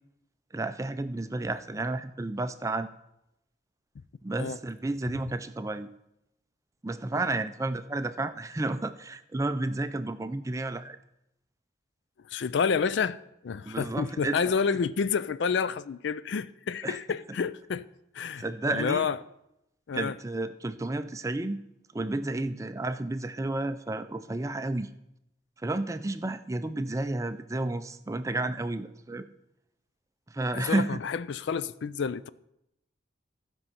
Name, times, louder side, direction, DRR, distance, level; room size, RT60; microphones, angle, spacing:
voice 1, 0.5-2.9 4.2-5.9 6.8-11.0 13.7-14.4 16.8-17.0 18.4-19.1 19.9-21.6 21.9-24.9 25.6-29.3 30.3-31.0, right 2 dB, 15° right, 0.4 m, -31 dB
voice 2, 12.3-13.2 13.4-17.8 18.1-19.2 19.9-20.2 30.5-32.3, left 6 dB, 70° left, 0.4 m, -29 dB
15.0 x 5.4 x 5.6 m
head